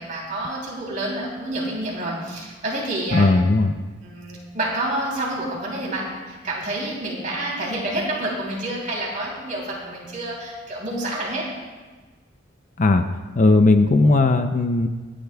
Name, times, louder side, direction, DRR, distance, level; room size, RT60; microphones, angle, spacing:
voice 1, 0.0-3.3 4.0-11.4, right 1 dB, 40° right, -3 dB, 3.1 m, -28 dB
voice 2, 3.1-3.7 12.8-13.0 13.4-14.9, left 2 dB, 35° left, 7 dB, 0.5 m, -17 dB
25.0 x 10.0 x 2.3 m, 1.3 s
head